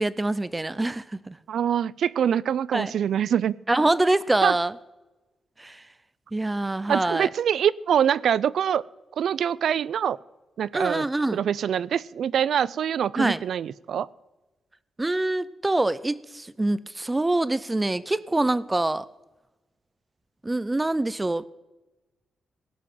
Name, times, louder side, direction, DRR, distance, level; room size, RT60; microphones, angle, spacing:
voice 1, 0.0-1.4 2.7-2.9 3.7-4.8 5.6-5.8 6.3-7.3 10.7-11.5 13.2-13.4 15.0-19.1 20.4-21.4, right 2 dB, 15° right, 0.5 m, -25 dB
voice 2, 1.5-3.6 4.4-4.5 6.9-8.8 9.2-10.2 10.6-11.1 11.3-14.1, right 9 dB, 75° right, 0.4 m, -24 dB
16.5 x 6.2 x 9.2 m
wide cardioid pair, 140°, 0 cm